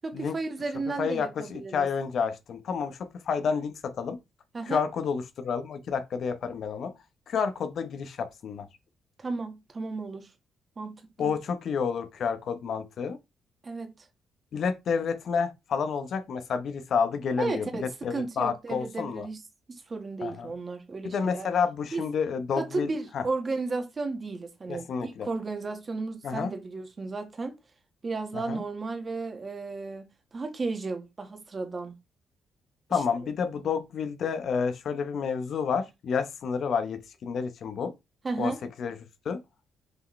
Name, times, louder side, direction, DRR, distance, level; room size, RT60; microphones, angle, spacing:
voice 1, 0.0-1.9 4.5-4.8 9.2-10.3 10.8-11.3 13.6-13.9 17.4-19.4 19.7-21.5 21.9-22.1 22.6-27.5 28.0-30.1 30.3-32.0 38.2-38.6, right 3 dB, 35° right, 1.7 m, -34 dB
voice 2, 1.0-4.2 4.6-6.9 7.3-8.7 11.2-13.2 14.5-19.3 20.2-20.5 21.0-23.2 24.7-25.3 26.2-26.5 28.3-28.6 32.9-37.9 38.4-38.5 38.8-38.9 39.2-39.4, left 6 dB, 60° left, 1.1 m, -30 dB
6.5 x 4.9 x 3.3 m
cardioid pair, 90°, 0 cm